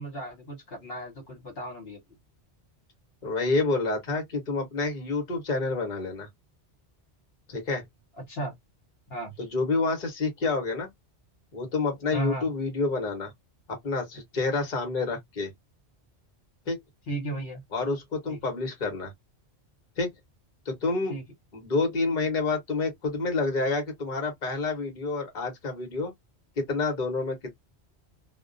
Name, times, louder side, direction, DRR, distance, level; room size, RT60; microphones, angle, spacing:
voice 1, 0.0-2.0 8.3-8.6 9.1-9.4 12.1-12.5 17.1-17.6 18.3-18.4 21.1-21.2, right 1 dB, 65° left, 1.2 m, -35 dB
voice 2, 3.2-6.3 7.5-7.8 9.4-10.9 11.5-13.3 13.8-15.5 16.7-16.8 17.7-19.1 20.0-20.1 20.7-21.1 21.5-26.1 26.6-27.6, left 3 dB, 45° left, 1.1 m, -28 dB
2.3 x 2.1 x 2.5 m
omnidirectional pair, 1.1 m